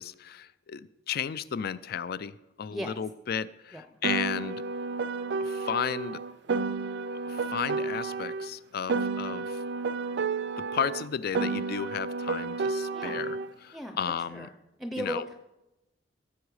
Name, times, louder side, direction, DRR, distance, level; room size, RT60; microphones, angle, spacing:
voice 1, 0.0-4.6 5.4-6.2 7.3-9.6 10.6-13.4 13.6-14.5 15.0-15.2, left 7 dB, 55° left, 17 dB, 0.4 m, -34 dB
Piano, 4.0-8.5 8.9-13.5, right 4 dB, 65° right, 0.4 m, -31 dB
voice 2, 12.9-13.3 13.7-14.0 14.3-14.5 14.8-15.4, equal, ahead, 6 dB, 0.6 m, -36 dB
15.0 x 7.1 x 4.8 m, 0.96 s
head